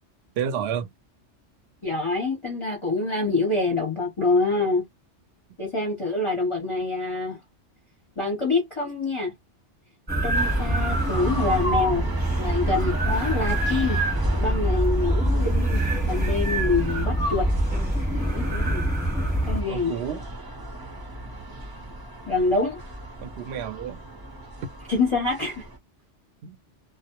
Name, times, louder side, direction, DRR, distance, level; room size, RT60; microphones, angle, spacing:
voice 1, 0.4-0.9 19.7-20.2 23.2-24.0 26.4-26.6, right 8 dB, 70° right, 0.8 m, -30 dB
voice 2, 1.8-4.8 5.6-7.4 8.2-9.3 10.2-12.1 12.4-14.0 14.3-17.5 18.3-18.8 19.4-19.9 22.3-22.8 24.9-25.6, left 3 dB, 35° left, 0.6 m, -26 dB
sound 1, 10.1-19.6, right 1 dB, 10° right, 0.9 m, -24 dB
sound 2, 10.3-25.8, right 1 dB, 25° right, 0.5 m, -36 dB
2.1 x 2.0 x 2.8 m
omnidirectional pair, 1.2 m